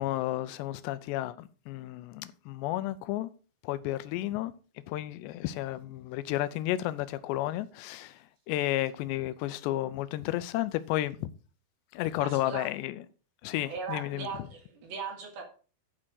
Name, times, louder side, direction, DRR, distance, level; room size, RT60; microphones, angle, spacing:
voice 1, 0.0-3.3 3.6-4.5 4.9-11.3 11.9-13.0 13.4-14.3, left 15 dB, 80° left, 2.7 m, -32 dB
voice 2, 12.2-12.7 13.6-15.4, right 4 dB, 60° right, 3.6 m, -38 dB
10.0 x 5.9 x 6.3 m
omnidirectional pair, 5.5 m